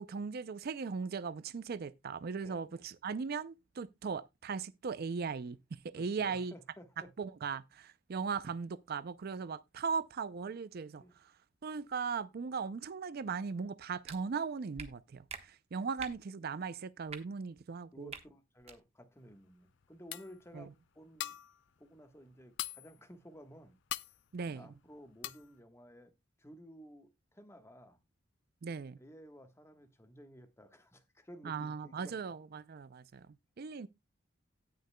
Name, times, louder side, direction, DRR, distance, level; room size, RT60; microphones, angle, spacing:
voice 1, 0.0-6.5 7.2-11.0 11.6-18.1 20.5-20.6 24.3-24.7 28.6-29.0 31.4-33.9, right 5 dB, 50° right, 0.4 m, -38 dB
voice 2, 2.4-2.9 5.9-7.1 11.0-11.1 15.8-15.9 17.9-21.4 21.8-23.8 24.5-26.1 26.4-28.0 29.0-32.1, equal, 15° left, 1.2 m, -55 dB
sound 1, 14.0-14.2 14.8-14.9 15.3-15.4 16.0-16.2 17.1-17.2 18.1-18.2 18.6-18.8, right 5 dB, 30° right, 1.2 m, -44 dB
sound 2, 19.3-19.4 19.8-19.9 20.1-20.5 21.0-21.6 21.9-22.0 22.3-23.0 23.4-23.5 23.9-24.2 24.6-24.8 25.2-25.5, left 13 dB, 65° left, 0.5 m, -41 dB
17.5 x 6.5 x 2.2 m
head